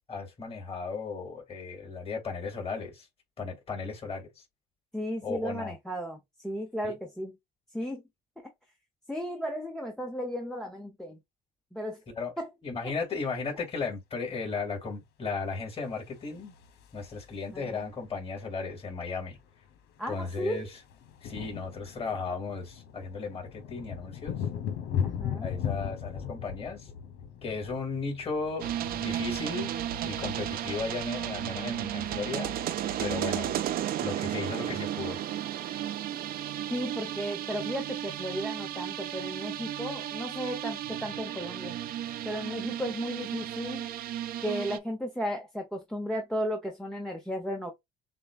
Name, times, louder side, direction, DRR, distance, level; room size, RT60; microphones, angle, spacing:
voice 1, 0.1-3.1 3.4-4.4 5.2-5.7 6.8-6.9 12.1-12.3 12.6-16.5 16.9-19.4 20.1-20.8 21.2-24.4 25.3-26.9 27.4-28.7 28.9-29.7 30.0-32.5 33.0-33.5 34.0-35.2 35.6-35.8, left 4 dB, 35° left, 3.2 m, -35 dB
voice 2, 4.9-6.2 6.4-7.3 7.7-8.0 8.4-8.5 9.1-11.2 11.7-12.0 12.4-12.5 12.8-13.2 17.5-17.8 20.0-20.7 25.0-25.5 36.7-41.8 42.2-43.9 44.4-47.7, equal, 5° left, 0.9 m, -35 dB
sound 1, 16.0-17.6 18.9-19.0 19.2-19.4 19.7-31.8, left 8 dB, 80° left, 1.0 m, -38 dB
sound 2, 28.6-44.8, right 11 dB, 60° right, 0.6 m, -34 dB
6.8 x 2.3 x 2.4 m
cardioid pair, 110°, 17 cm